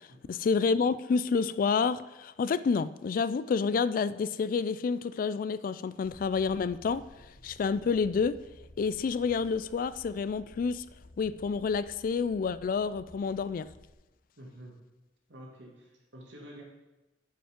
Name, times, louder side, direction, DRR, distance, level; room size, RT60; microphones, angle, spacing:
voice 1, 0.3-7.1 7.4-8.4 8.8-10.8 11.2-13.7, left 5 dB, 50° left, 0.3 m, -29 dB
sound 1, 6.0-13.9, left 1 dB, 75° left, 1.0 m, -54 dB
voice 2, 14.4-14.8 15.3-16.6, right 1 dB, 90° right, 1.9 m, -49 dB
8.7 x 5.4 x 5.1 m
head